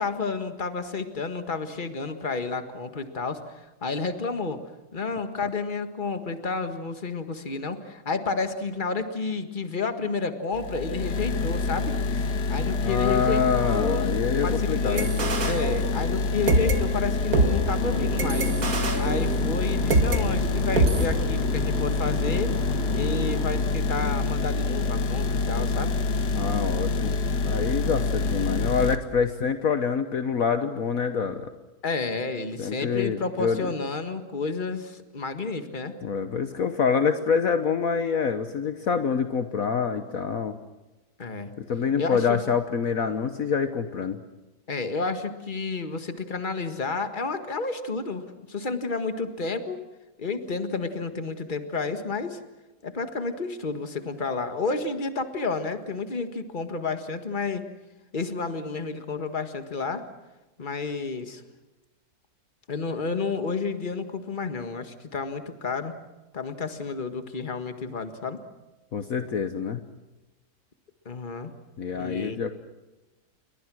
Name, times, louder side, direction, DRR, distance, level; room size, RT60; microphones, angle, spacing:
voice 1, 0.0-4.6 4.9-12.0 12.5-14.1 14.4-15.1 15.4-18.5 19.0-25.9 31.8-35.9 41.2-41.5 42.0-42.4 44.7-49.9 50.2-52.4 52.8-57.7 58.1-60.0 60.6-61.4 62.7-65.9 66.3-68.4 71.0-71.5 71.9-72.6, left 4 dB, 30° left, 8 dB, 1.8 m, -31 dB
sound 1, 10.5-29.0, left 3 dB, 80° left, 1.9 m, -26 dB
voice 2, 12.8-15.1 26.3-27.2 27.4-31.5 32.6-33.7 36.0-40.6 41.6-44.2 68.9-69.8 71.8-72.6, left 6 dB, 60° left, 8 dB, 1.5 m, -26 dB
sound 2, 15.0-16.2 16.5-20.2 20.8-21.1, right 2 dB, 60° right, 2.5 m, -25 dB
sound 3, 17.8-23.6, right 2 dB, 40° right, 3.2 m, -36 dB
29.0 x 23.0 x 6.3 m, 1.1 s
omnidirectional pair, 1.7 m